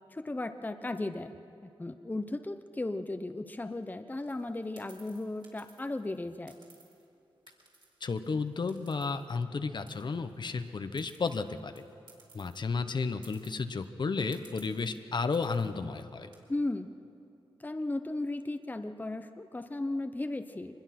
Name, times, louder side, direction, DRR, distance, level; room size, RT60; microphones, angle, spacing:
voice 1, 0.1-1.3 1.6-6.5 16.5-16.9 17.6-20.8, left 2 dB, 20° left, 8 dB, 0.8 m, -35 dB
sound 1, 4.2-7.1 7.5-9.6 9.9-12.6 12.9-13.0 13.2-13.8 14.3-15.0 15.3-15.7 16.1-16.4, right 3 dB, 55° right, 4.4 m, -59 dB
voice 2, 8.0-11.8 12.3-16.3, left 4 dB, 55° left, 9 dB, 1.0 m, -33 dB
24.0 x 21.0 x 6.0 m, 2.7 s
wide cardioid pair, 90°, 9 cm